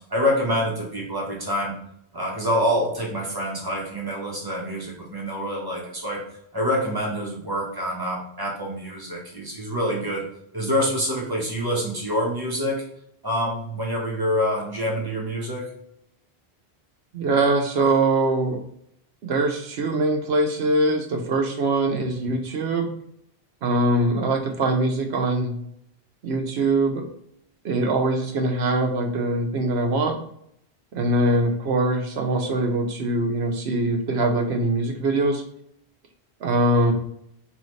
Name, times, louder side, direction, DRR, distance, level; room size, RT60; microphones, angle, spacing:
voice 1, 0.1-1.7 2.1-6.2 6.5-10.2 10.5-12.8 13.2-15.7, equal, 20° right, -3 dB, 1.1 m, -26 dB
voice 2, 17.1-18.6 19.2-22.9 23.6-25.5 26.2-27.0 27.6-30.2 30.9-35.4 36.4-36.9, right 2 dB, 80° right, 4 dB, 1.0 m, -22 dB
3.9 x 3.2 x 3.2 m, 0.71 s
omnidirectional pair, 1.1 m